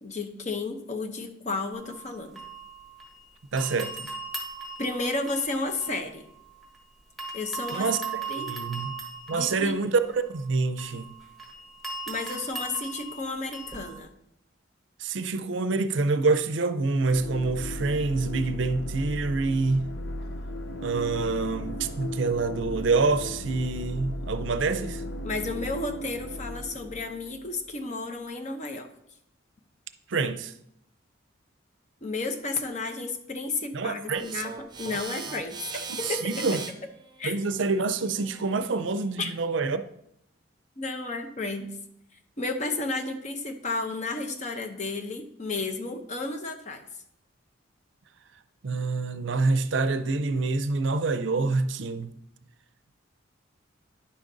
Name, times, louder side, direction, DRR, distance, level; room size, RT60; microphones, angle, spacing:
voice 1, 0.0-2.4 4.8-6.2 7.3-7.9 8.3-8.5 9.3-9.7 12.1-14.1 25.2-28.9 32.0-36.5 37.2-37.3 39.2-39.3 40.8-41.7 42.4-46.8, left 3 dB, 35° left, 0.8 m, -32 dB
sound 1, 1.7-3.2 3.6-6.8 7.2-14.0, right 4 dB, ahead, 1.1 m, -39 dB
voice 2, 3.5-3.9 7.7-8.0 8.3-8.9 9.3-11.1 15.0-19.9 20.8-25.0 30.1-30.5 33.7-34.4 35.9-36.6 37.2-39.8 48.6-52.1, right 3 dB, 70° right, 0.5 m, -26 dB
sound 2, 17.0-27.8, left 1 dB, 70° left, 0.6 m, -36 dB
sound 3, 34.1-39.2, right 5 dB, 20° right, 0.7 m, -40 dB
10.0 x 5.0 x 3.9 m
head